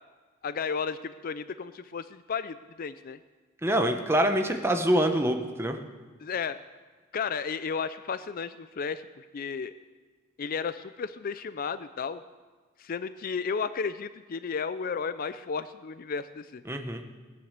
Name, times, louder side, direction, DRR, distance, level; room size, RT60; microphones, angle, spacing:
voice 1, 0.4-3.2 6.2-6.6 7.1-9.7 10.4-12.2 12.8-16.6, left 5 dB, 45° left, 13 dB, 0.4 m, -33 dB
voice 2, 3.6-5.8 16.7-17.0, right 1 dB, 10° right, 5 dB, 1.0 m, -25 dB
18.0 x 9.7 x 6.6 m, 1.4 s
head